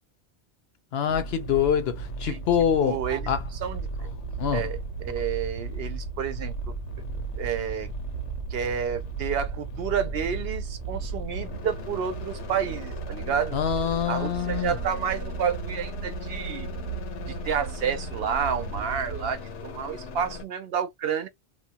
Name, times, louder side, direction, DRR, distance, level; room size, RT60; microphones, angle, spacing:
voice 1, 0.9-3.0 3.3-3.4 4.4-4.7 13.5-14.7, left 8 dB, 70° left, 0.8 m, -25 dB
sound 1, 1.1-20.4, right 1 dB, 90° left, 1.1 m, -37 dB
sound 2, 2.5-19.3, right 5 dB, 90° right, 0.9 m, -38 dB
voice 2, 2.8-4.1 4.5-4.8 5.0-6.7 7.4-7.9 8.5-13.6 14.1-16.7 17.2-21.3, right 7 dB, 65° right, 0.7 m, -30 dB
2.9 x 2.1 x 2.8 m
omnidirectional pair, 1.2 m